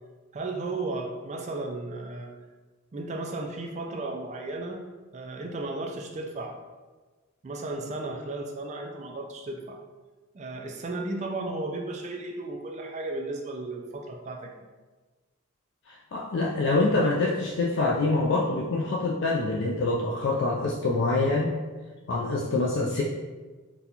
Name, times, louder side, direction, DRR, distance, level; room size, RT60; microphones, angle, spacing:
voice 1, 0.3-2.3 2.9-4.8 5.1-6.6 7.4-9.8 10.3-14.6, right 2 dB, 30° right, 2 dB, 0.3 m, -34 dB
voice 2, 15.9-21.5 22.1-23.0, left 2 dB, 55° left, -2 dB, 0.3 m, -25 dB
4.0 x 2.2 x 2.8 m, 1.3 s
head